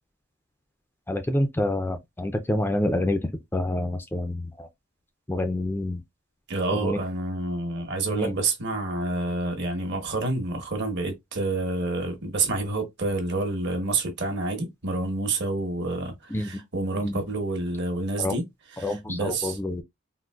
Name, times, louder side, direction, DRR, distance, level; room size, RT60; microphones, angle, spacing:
voice 1, 1.1-3.2 3.5-4.7 5.3-6.0 6.8-7.0 8.1-8.4 16.3-16.5 17.0-17.2 18.2-18.3 18.8-19.8, left 1 dB, 10° left, 0.3 m, -27 dB
voice 2, 6.5-18.5 18.7-19.6, right 2 dB, 60° right, 1.0 m, -28 dB
3.8 x 2.4 x 2.3 m
head